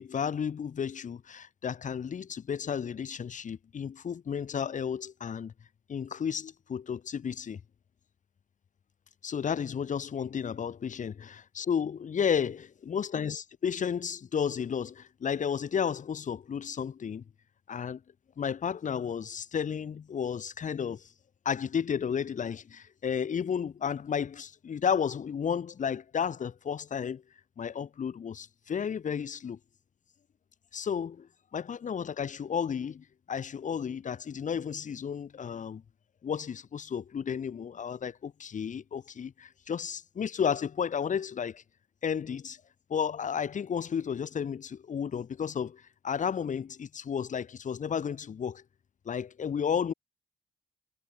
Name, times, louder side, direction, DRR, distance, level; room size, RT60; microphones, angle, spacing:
voice 1, 0.0-5.5 5.9-7.6 9.2-17.2 17.7-18.0 18.4-21.0 21.4-27.2 27.6-29.6 30.7-35.8 36.2-41.6 42.0-42.6 42.9-48.6 49.0-49.9, left 7 dB, 50° left, 1.2 m, -32 dB
hypercardioid pair, 45°, 16 cm